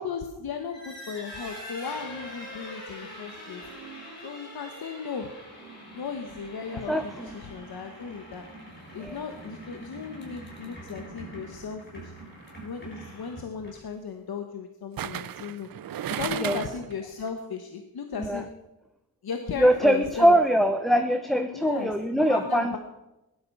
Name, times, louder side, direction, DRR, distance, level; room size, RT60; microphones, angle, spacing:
voice 1, 0.0-3.6 4.2-5.3 5.9-8.5 8.9-12.1 12.6-15.7 16.1-18.5 19.2-20.4 21.5-22.8, left 6 dB, 80° left, 5 dB, 1.3 m, -36 dB
sound 1, 0.6-14.0, right 1 dB, 30° left, 6.4 m, -44 dB
voice 2, 6.7-7.3 9.0-9.2 16.4-16.6 18.2-18.4 19.6-22.8, equal, ahead, 6 dB, 0.8 m, -23 dB
sound 2, 12.3-12.6 15.0-16.9 17.3-17.4, right 11 dB, 70° right, 0.5 m, -34 dB
17.0 x 12.0 x 5.5 m, 0.95 s
wide cardioid pair, 105°, 36 cm